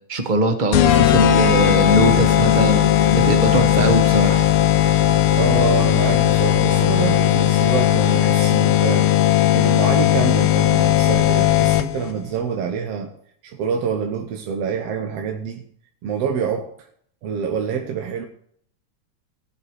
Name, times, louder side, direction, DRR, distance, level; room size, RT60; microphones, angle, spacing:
voice 1, 0.1-2.9 3.1-4.4, right 2 dB, 30° right, 6 dB, 0.8 m, -21 dB
sound 1, 0.7-12.1, left 12 dB, 80° left, 1.3 m, -17 dB
voice 2, 5.4-9.1 9.5-13.1 13.4-15.6 16.0-16.7 17.2-18.3, right 6 dB, 65° right, 4 dB, 2.0 m, -26 dB
17.0 x 6.8 x 6.3 m, 0.62 s
omnidirectional pair, 3.3 m